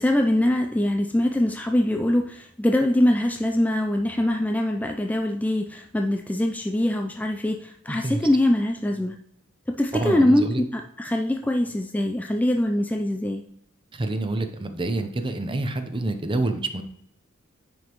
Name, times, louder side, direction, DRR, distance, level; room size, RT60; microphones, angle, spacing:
voice 1, 0.0-9.2 9.7-13.4, left 1 dB, 5° left, 3 dB, 0.4 m, -23 dB
voice 2, 7.9-8.2 9.9-10.6 13.9-16.8, right 2 dB, 25° right, 7 dB, 0.7 m, -27 dB
9.5 x 5.3 x 3.0 m, 0.73 s
head